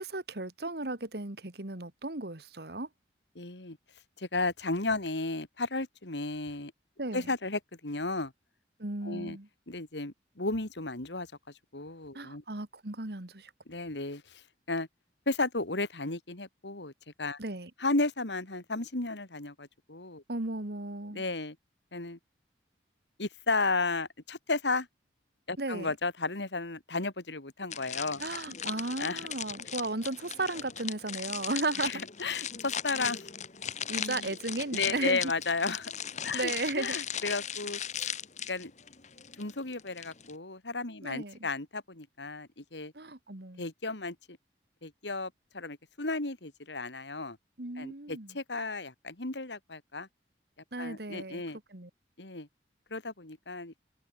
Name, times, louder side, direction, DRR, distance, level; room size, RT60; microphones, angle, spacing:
voice 1, 0.0-2.9 7.0-7.3 8.8-9.5 12.1-13.5 17.4-17.7 20.3-21.2 25.6-25.9 28.2-32.0 33.9-35.3 36.3-37.0 41.0-41.4 42.9-43.6 47.6-48.4 50.7-51.4 51.7-51.9, right 2 dB, 65° right, 2.0 m, -35 dB
voice 2, 3.3-3.8 4.2-6.7 7.1-8.3 9.0-9.4 9.7-11.3 11.7-12.4 13.7-14.9 15.3-16.9 17.2-17.4 17.8-20.2 21.1-21.6 21.9-22.2 23.2-24.9 25.5-28.2 29.0-29.3 31.8-33.3 33.9-34.3 34.7-35.9 36.2-36.5 36.8-37.8 38.5-38.7 39.4-42.9 43.6-44.4 44.8-47.4 47.8-50.1 50.8-51.6 52.2-52.5 52.9-53.7, left 3 dB, 85° left, 2.9 m, -34 dB
sound 1, 27.7-40.4, left 9 dB, 40° left, 1.6 m, -38 dB
head